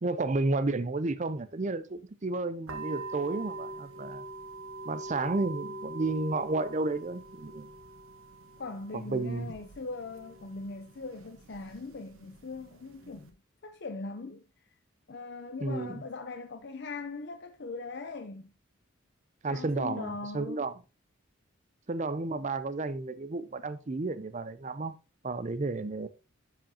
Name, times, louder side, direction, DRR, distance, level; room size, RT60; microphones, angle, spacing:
voice 1, 0.0-4.2 4.8-7.7 8.9-9.5 15.6-16.0 19.4-20.7 21.9-24.9 25.2-26.1, right 3 dB, 35° right, 0.5 m, -32 dB
sound 1, 2.7-13.3, right 2 dB, 85° right, 1.1 m, -44 dB
voice 2, 8.6-13.4 13.6-14.4 15.1-18.5 19.5-20.7, left 3 dB, 55° left, 0.6 m, -40 dB
12.0 x 5.2 x 2.8 m
head